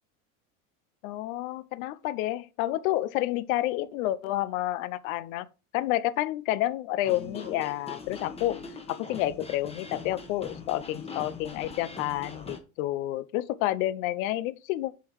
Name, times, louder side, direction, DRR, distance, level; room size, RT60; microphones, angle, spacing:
voice 1, 1.0-5.5 5.7-8.6 8.9-14.9, left 15 dB, 80° left, 0.7 m, -29 dB
sound 1, 7.0-12.6, left 4 dB, 15° left, 1.3 m, -42 dB
8.4 x 3.9 x 4.6 m
supercardioid pair, 130°, 42 cm